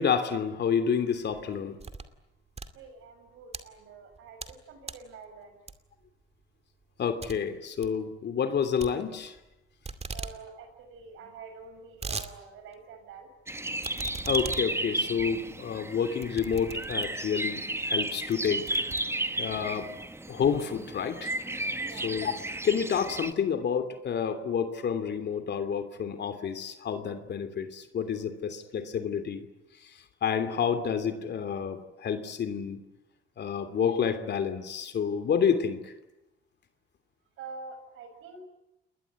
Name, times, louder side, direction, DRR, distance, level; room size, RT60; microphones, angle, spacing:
voice 1, 0.0-1.8 7.0-9.3 14.3-18.8 19.4-20.0 20.3-21.3 21.9-22.4 22.6-29.5 29.8-32.8 33.4-35.9, left 7 dB, 60° left, 9 dB, 2.9 m, -29 dB
sound 1, 1.3-2.2 2.5-3.6 4.1-4.6 4.8-5.1 5.7-6.0 6.4-6.5 6.8-6.9 7.2-7.4 7.7-8.0 8.8-9.5 9.8-10.4 10.7-10.8 11.0-11.1 11.6-12.3 12.7-12.8 13.8-17.3 17.9-18.0 18.3-19.6, right 4 dB, 30° right, 2.4 m, -40 dB
voice 2, 2.7-5.6 10.1-13.3 21.8-22.1 37.4-38.4, right 4 dB, 85° right, 7 dB, 6.5 m, -46 dB
sound 2, 13.5-23.3, right 1 dB, 10° right, 1.7 m, -33 dB
28.5 x 21.0 x 9.6 m, 0.93 s
cardioid pair, 90°, 20 cm